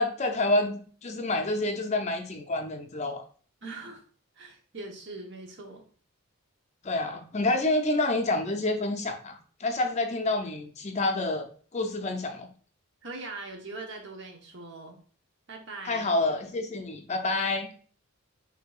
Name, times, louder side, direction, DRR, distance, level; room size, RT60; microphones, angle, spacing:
voice 1, 0.0-3.2 6.8-12.5 15.8-17.7, left 2 dB, 30° left, 5 dB, 0.5 m, -28 dB
voice 2, 3.6-4.0 4.4-5.8 13.0-15.0 15.5-16.1, right 3 dB, 55° right, 2 dB, 0.9 m, -41 dB
6.4 x 2.7 x 2.3 m, 0.43 s
head